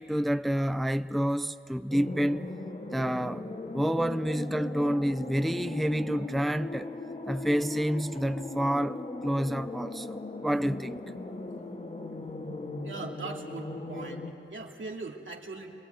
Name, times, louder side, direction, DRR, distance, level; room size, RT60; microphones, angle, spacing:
voice 1, 0.0-2.5 2.9-3.4 3.7-6.9 7.3-11.0, equal, ahead, 0.5 m, -29 dB
sound 1, 1.9-14.3, left 2 dB, 35° left, 2.1 m, -38 dB
voice 2, 12.8-15.7, right 3 dB, 70° right, 2.6 m, -40 dB
28.0 x 20.5 x 9.2 m
wide cardioid pair, 60°, 20 cm